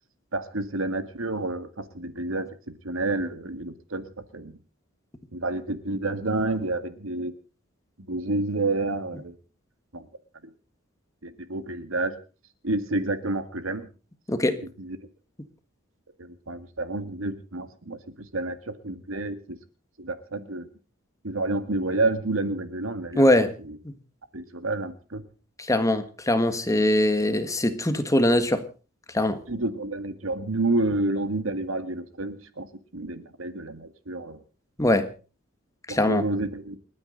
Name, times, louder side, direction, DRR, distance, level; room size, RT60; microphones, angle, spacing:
voice 1, 0.3-4.1 4.3-4.6 5.3-7.3 8.1-9.4 9.9-10.1 10.4-10.5 11.2-12.2 12.6-13.9 14.8-15.0 16.2-19.6 20.0-20.7 21.2-23.8 24.3-25.2 29.5-32.7 32.9-34.4 35.9-36.8, right 2 dB, 80° right, 11 dB, 1.9 m, -29 dB
voice 2, 23.1-23.5 25.6-28.6 29.1-29.4 34.8-35.1 35.9-36.2, left 1 dB, 15° left, 9 dB, 1.5 m, -22 dB
29.0 x 9.7 x 3.9 m, 0.34 s
head